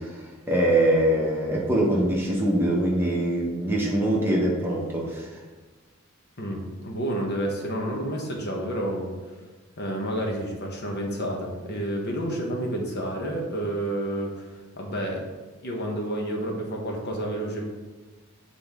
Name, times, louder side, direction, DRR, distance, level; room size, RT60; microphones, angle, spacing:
voice 1, 0.0-5.3, right 1 dB, 10° right, -3 dB, 1.0 m, -23 dB
voice 2, 6.4-9.1 9.8-15.2 15.6-17.6, right 1 dB, 50° left, 0 dB, 1.1 m, -30 dB
7.7 x 4.0 x 3.6 m, 1.3 s
head